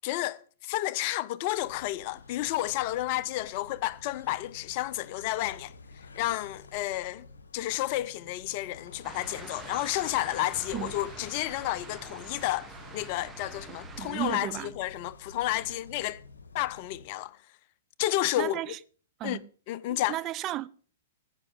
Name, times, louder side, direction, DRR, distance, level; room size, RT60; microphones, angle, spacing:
voice 1, 0.0-5.7 6.1-7.3 7.5-16.2 16.5-17.4 18.0-18.7 19.2-19.4 19.7-20.2, left 15 dB, 45° left, 0.7 m, -31 dB
sound 1, 1.5-17.3, left 3 dB, 80° left, 1.2 m, -50 dB
sound 2, 9.0-14.4, right 4 dB, 15° right, 1.8 m, -46 dB
voice 2, 13.7-14.7 18.4-18.8 19.2-19.4 19.9-20.7, right 15 dB, 30° right, 0.6 m, -34 dB
15.0 x 6.1 x 7.1 m
hypercardioid pair, 115°, 0 cm